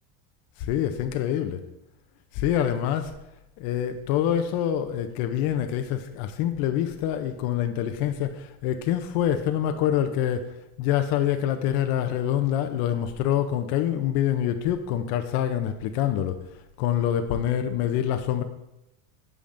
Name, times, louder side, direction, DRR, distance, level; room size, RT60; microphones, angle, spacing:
voice 1, 0.6-1.6 2.3-3.1 3.6-10.5 10.8-16.4 16.8-18.4, left 10 dB, 55° left, 7 dB, 0.6 m, -26 dB
8.5 x 7.1 x 2.5 m, 0.87 s
cardioid pair, 160°, 44 cm